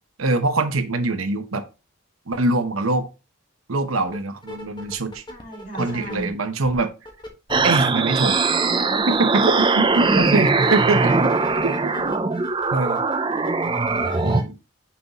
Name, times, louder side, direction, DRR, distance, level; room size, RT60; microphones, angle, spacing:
voice 1, 0.2-1.7 2.3-3.1 3.7-5.2 5.7-6.9 7.6-8.6 9.1-11.3 12.0-12.1 12.7-13.0 14.2-14.5, right 2 dB, 90° right, 0.9 m, -23 dB
sound 1, 4.1-4.2 4.4-6.3 6.6-7.6 8.0-14.4, left 1 dB, 20° left, 1.2 m, -35 dB
voice 2, 5.3-6.3 9.5-10.1 13.7-14.3, right 1 dB, 40° left, 2.7 m, -37 dB
sound 2, 7.5-14.4, right 4 dB, 25° right, 0.5 m, -21 dB
5.9 x 5.5 x 2.9 m
head